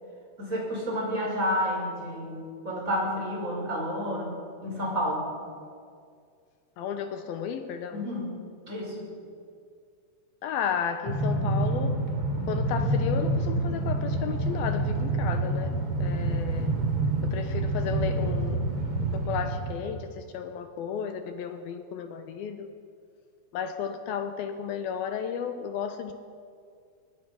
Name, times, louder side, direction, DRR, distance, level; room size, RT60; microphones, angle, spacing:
voice 1, 0.4-4.3 4.6-5.3 7.9-8.3 8.7-9.1, equal, 20° right, -3 dB, 6.2 m, -30 dB
voice 2, 6.8-8.1 10.4-12.0 12.5-16.7 17.2-18.7 19.1-22.7 23.5-26.1, left 7 dB, 75° left, 7 dB, 2.7 m, -33 dB
Train, 11.1-19.9, right 2 dB, 35° right, 3.6 m, -27 dB
25.0 x 21.5 x 5.8 m, 2.2 s
omnidirectional pair, 4.5 m